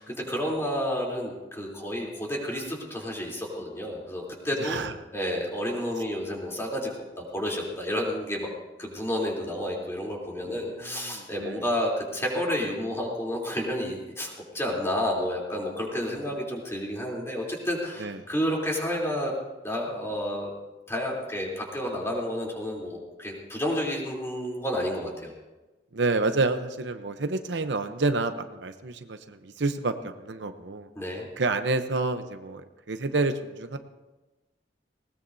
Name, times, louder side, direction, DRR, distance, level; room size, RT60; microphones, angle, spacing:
voice 1, 0.0-4.8 5.1-6.9 7.3-8.5 8.8-19.3 19.6-20.5 20.9-25.3 31.0-31.3, equal, 15° left, -2 dB, 3.4 m, -30 dB
voice 2, 4.6-4.9 10.5-11.6 16.0-16.4 18.0-18.2 25.9-30.9 31.4-33.8, right 3 dB, 75° right, 8 dB, 0.8 m, -29 dB
20.0 x 18.5 x 2.7 m, 1.1 s
head